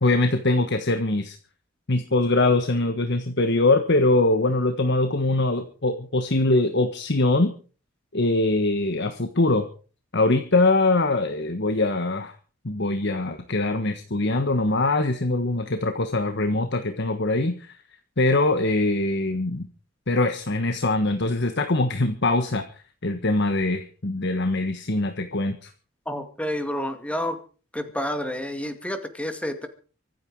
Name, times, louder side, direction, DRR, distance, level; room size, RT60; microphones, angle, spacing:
voice 1, 0.0-1.4 1.9-7.5 8.1-9.7 10.1-12.3 12.6-17.7 18.2-19.6 20.1-22.6 23.0-25.7, left 2 dB, 55° left, 7 dB, 1.4 m, -22 dB
voice 2, 26.1-27.4 27.7-29.7, left 1 dB, 5° left, 7 dB, 2.2 m, -29 dB
24.5 x 9.5 x 4.8 m, 0.39 s
head